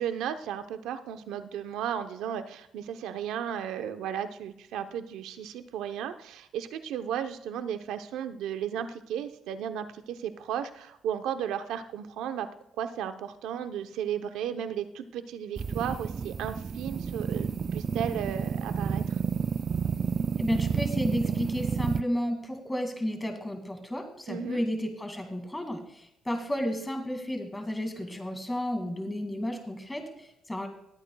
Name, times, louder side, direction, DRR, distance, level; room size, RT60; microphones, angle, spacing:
voice 1, 0.0-12.5 12.8-19.2 24.3-24.6, right 9 dB, 90° right, 9 dB, 0.7 m, -34 dB
sound 1, 15.6-22.0, right 6 dB, 45° right, 0.4 m, -30 dB
voice 2, 20.4-30.7, equal, 10° left, 5 dB, 2.2 m, -32 dB
20.5 x 8.7 x 2.3 m, 0.78 s
cardioid pair, 90°, 0 cm